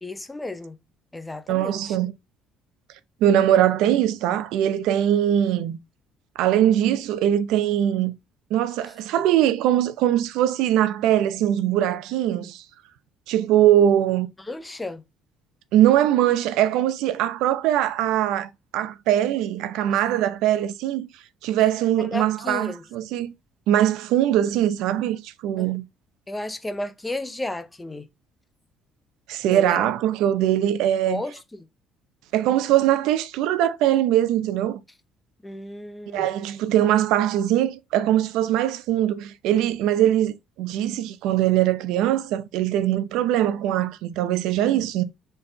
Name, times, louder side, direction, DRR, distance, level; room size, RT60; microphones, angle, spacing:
voice 1, 0.0-0.8 1.1-2.0 14.5-15.0 22.0-22.8 25.6-25.7 26.3-28.1 29.4-29.9 31.1-31.7 35.4-36.3, left 2 dB, 10° left, 0.6 m, -33 dB
voice 2, 1.5-2.1 3.2-5.8 6.4-8.1 8.5-12.6 13.3-14.3 15.7-21.1 21.4-23.3 23.7-25.8 29.3-31.2 32.3-34.8 36.1-45.0, right 11 dB, 80° right, 0.7 m, -21 dB
5.9 x 4.2 x 3.8 m
cardioid pair, 175°, 0 cm